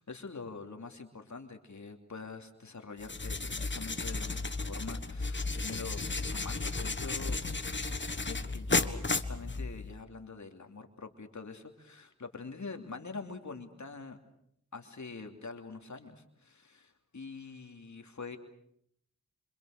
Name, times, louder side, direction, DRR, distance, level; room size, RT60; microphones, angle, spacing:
voice 1, 0.0-6.0 6.3-7.4 8.2-14.2 14.7-18.4, left 4 dB, 75° left, 5 dB, 3.0 m, -45 dB
sound 1, 3.0-10.0, left 3 dB, 40° left, 1.5 m, -34 dB
27.0 x 26.5 x 6.6 m, 0.71 s
wide cardioid pair, 50°, 29 cm